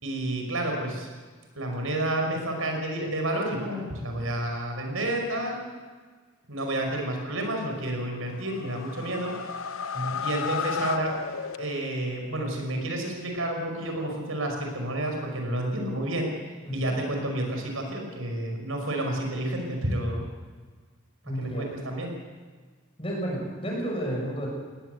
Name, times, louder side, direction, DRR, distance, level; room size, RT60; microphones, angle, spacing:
voice 1, 0.0-1.1 1.6-5.6 6.5-9.3 10.2-11.2 11.6-16.3 16.7-20.2 21.3-22.1, right 1 dB, 85° right, 2 dB, 5.5 m, -30 dB
sound 1, 8.3-12.1, left 6 dB, 85° left, 0.7 m, -33 dB
voice 2, 21.2-21.7 23.0-24.5, equal, 25° left, -2 dB, 6.7 m, -31 dB
20.0 x 19.0 x 8.0 m, 1.5 s
head